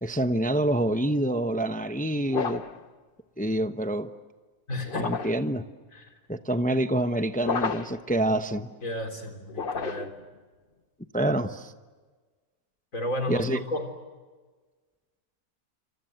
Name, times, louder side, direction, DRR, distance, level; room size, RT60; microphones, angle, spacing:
voice 1, 0.0-2.6 3.4-4.1 5.0-5.6 6.3-8.7 11.1-11.5 13.3-13.6, right 1 dB, 5° left, 9 dB, 0.7 m, -26 dB
sound 1, 2.3-2.8 4.8-5.5 7.4-8.1 9.5-10.2, left 5 dB, 40° left, 1.3 m, -31 dB
voice 2, 4.7-5.1 5.9-6.1 8.8-10.1 11.2-11.3 12.9-13.9, left 1 dB, 60° left, 5 dB, 4.3 m, -32 dB
28.5 x 26.0 x 7.9 m, 1.4 s
omnidirectional pair, 1.6 m